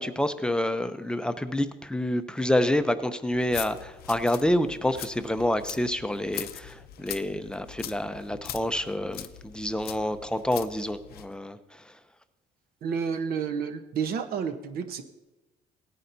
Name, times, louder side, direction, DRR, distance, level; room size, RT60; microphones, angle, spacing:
voice 1, 0.0-11.9, left 1 dB, 5° left, 10 dB, 0.5 m, -28 dB
sound 1, 3.3-11.3, left 11 dB, 65° left, 0.6 m, -42 dB
voice 2, 12.8-15.0, right 6 dB, 65° right, 8 dB, 0.9 m, -30 dB
17.5 x 9.7 x 2.7 m, 1.1 s
cardioid pair, 110°, 17 cm